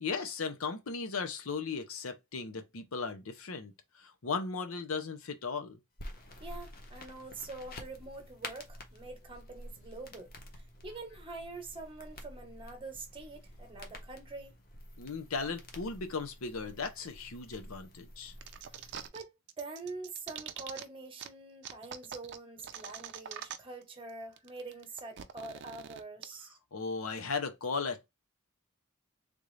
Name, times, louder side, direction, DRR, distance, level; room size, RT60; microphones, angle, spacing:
voice 1, 0.0-5.8 15.0-18.3 26.7-28.1, left 4 dB, 80° left, 0.7 m, -37 dB
sound 1, 6.0-19.1, left 1 dB, 45° left, 0.9 m, -49 dB
voice 2, 6.4-14.5 18.8-26.6, right 3 dB, 25° right, 1.0 m, -45 dB
sound 2, 18.4-19.2 19.5-20.8 21.2-21.3 21.6-23.8 24.1-24.2 24.4-26.2, right 9 dB, 55° right, 0.5 m, -44 dB
3.5 x 2.5 x 3.1 m
head